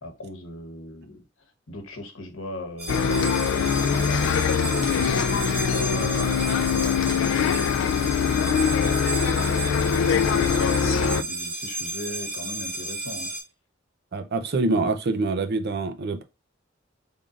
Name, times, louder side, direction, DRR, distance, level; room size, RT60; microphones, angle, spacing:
voice 1, 0.0-9.5 9.9-13.3, left 1 dB, 90° left, 1.0 m, -38 dB
sound 1, 2.8-13.4, right 2 dB, 30° right, 1.4 m, -33 dB
Bus, 2.9-11.2, left 7 dB, 70° left, 0.3 m, -23 dB
voice 2, 14.1-16.2, right 3 dB, 55° right, 0.6 m, -25 dB
3.8 x 3.6 x 2.4 m
head